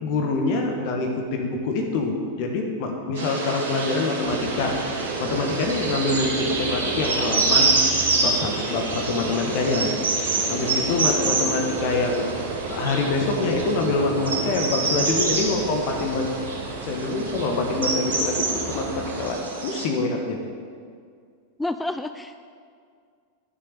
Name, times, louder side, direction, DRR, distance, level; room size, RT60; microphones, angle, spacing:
voice 1, 0.0-4.8 5.2-7.8 8.2-9.9 10.5-12.2 12.7-16.3 16.8-20.4, left 3 dB, 45° left, 2 dB, 1.5 m, -25 dB
sound 1, 3.2-19.9, right 3 dB, 65° right, 3.1 m, -27 dB
sound 2, 4.2-19.3, right 4 dB, 35° right, 2.2 m, -34 dB
voice 2, 11.0-11.7 21.6-22.3, left 2 dB, 5° left, 9 dB, 0.4 m, -31 dB
11.5 x 6.9 x 8.0 m, 2.1 s
figure-of-eight pair, 90°, 0 cm